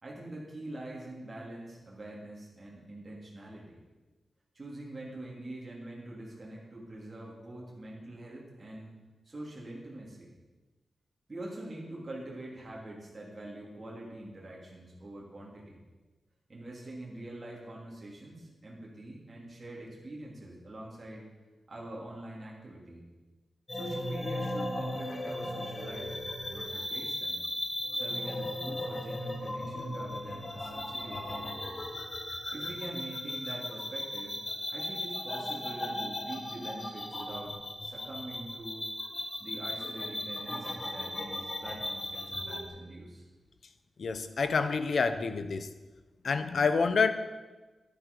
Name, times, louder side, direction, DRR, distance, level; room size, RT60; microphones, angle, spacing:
voice 1, 0.0-3.8 4.5-8.9 9.2-10.3 11.3-15.8 16.5-21.3 21.7-23.0 23.7-26.2 26.5-27.4 27.9-31.6 32.5-34.4 34.7-38.9 39.4-43.2, right 1 dB, 25° right, -5 dB, 3.0 m, -44 dB
sound 1, 23.7-42.7, left 1 dB, 25° left, 1.7 m, -36 dB
voice 2, 44.0-45.7 46.2-47.1, left 4 dB, 55° left, 10 dB, 0.8 m, -28 dB
11.5 x 10.5 x 5.4 m, 1.2 s
wide cardioid pair, 170°, 0 cm